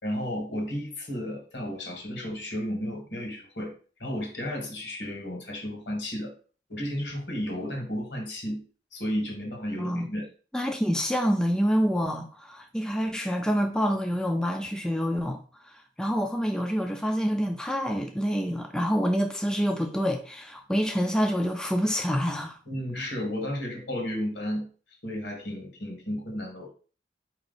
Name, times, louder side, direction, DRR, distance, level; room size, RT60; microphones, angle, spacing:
voice 1, 0.0-3.7 4.0-6.3 6.7-8.6 8.9-10.3 22.7-24.7 25.0-26.7, equal, 70° left, 1.6 m, -33 dB
voice 2, 10.5-15.4 15.6-22.6 23.0-23.1, equal, 5° left, 0.3 m, -27 dB
4.6 x 2.9 x 4.0 m
head